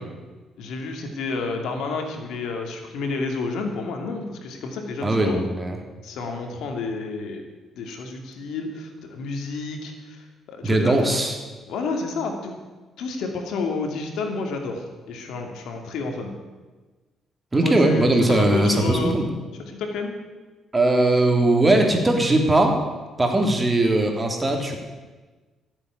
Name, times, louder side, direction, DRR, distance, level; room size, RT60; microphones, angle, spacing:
voice 1, 0.6-5.5 6.0-7.4 7.8-11.1 11.7-12.5 13.0-16.3 17.6-19.2 19.7-20.1, left 3 dB, 80° left, 4 dB, 2.7 m, -30 dB
voice 2, 5.0-5.8 10.6-11.4 17.5-19.3 20.7-22.8 23.2-24.8, right 2 dB, 20° right, 3 dB, 3.2 m, -19 dB
15.5 x 8.2 x 9.8 m, 1.3 s
cardioid pair, 90°, 0 cm